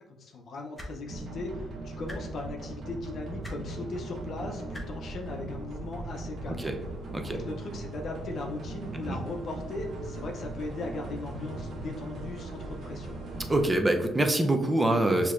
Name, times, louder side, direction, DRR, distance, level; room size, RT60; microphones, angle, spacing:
voice 1, 0.1-6.7 7.2-13.2, left 3 dB, 60° left, 1 dB, 0.6 m, -38 dB
sound 1, 0.7-0.9 2.0-2.2 3.4-3.6 4.7-4.8 6.1-6.2, left 1 dB, 20° left, 0.8 m, -39 dB
sound 2, 1.1-13.7, right 2 dB, 60° right, 0.9 m, -39 dB
voice 2, 13.5-15.3, right 1 dB, 15° right, 5 dB, 0.6 m, -25 dB
6.3 x 2.8 x 2.5 m, 1.1 s
cardioid pair, 90°, 0 cm